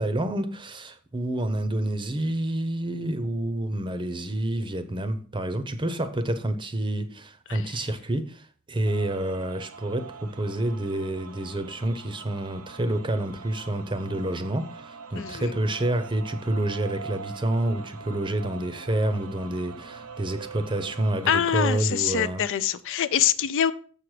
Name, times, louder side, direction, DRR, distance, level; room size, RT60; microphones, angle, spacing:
voice 1, 0.0-22.4, right 1 dB, 20° right, 0.7 m, -28 dB
sound 1, 8.8-21.8, right 5 dB, 75° right, 0.6 m, -43 dB
voice 2, 15.1-15.5 21.3-23.7, left 9 dB, 60° left, 0.4 m, -24 dB
6.9 x 6.2 x 4.9 m
head